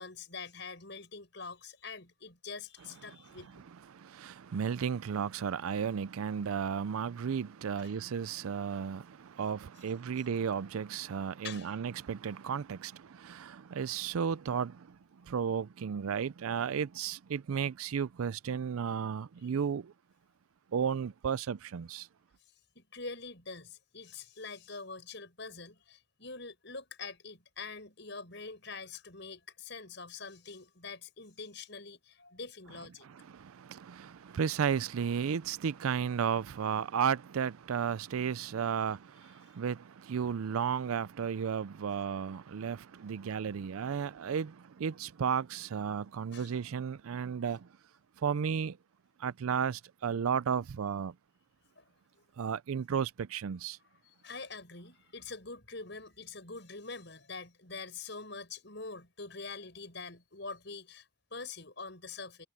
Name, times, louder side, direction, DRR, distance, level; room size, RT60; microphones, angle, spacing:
voice 1, 0.0-3.7 7.8-7.9 11.4-11.8 22.7-33.1 34.3-34.4 39.2-39.6 46.3-46.5 51.8-51.9 54.0-62.5, left 4 dB, 55° left, 7.6 m, -45 dB
voice 2, 3.9-19.9 20.7-22.1 33.0-47.7 48.2-48.8 49.2-51.1 52.4-53.8, right 7 dB, 85° right, 0.4 m, -34 dB
head